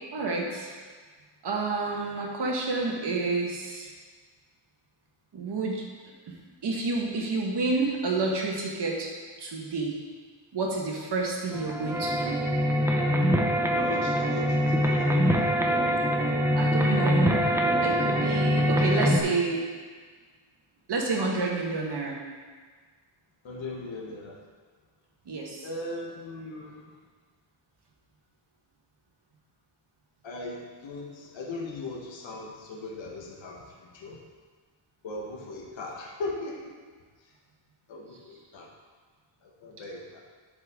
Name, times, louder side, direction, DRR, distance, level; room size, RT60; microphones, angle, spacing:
voice 1, 0.1-0.8 1.4-3.9 5.3-5.8 6.6-9.1 9.4-9.9 10.5-12.3 16.5-19.6 20.9-22.2 25.3-25.7, right 3 dB, 55° right, -1 dB, 1.5 m, -29 dB
sound 1, 11.5-19.2, equal, 5° right, 0.6 m, -24 dB
voice 2, 13.7-15.3 23.4-24.4 25.6-26.9 30.2-34.2 35.0-36.8 37.9-38.7 39.4-40.2, left 2 dB, 65° left, -1 dB, 1.3 m, -38 dB
11.5 x 5.5 x 3.6 m, 1.5 s
wide cardioid pair, 175°, 48 cm